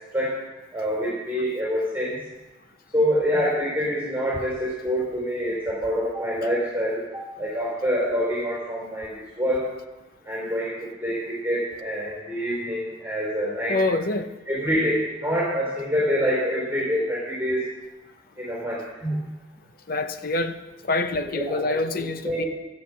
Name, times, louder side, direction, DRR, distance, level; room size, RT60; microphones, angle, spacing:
voice 1, 0.7-2.2 2.9-9.6 10.3-14.0 14.5-17.7 18.4-19.2 21.3-22.5, equal, 10° right, -6 dB, 4.0 m, -26 dB
voice 2, 13.7-14.3 19.9-20.6 20.8-22.4, left 2 dB, 50° left, 9 dB, 0.8 m, -26 dB
14.0 x 7.5 x 7.4 m, 1.1 s
head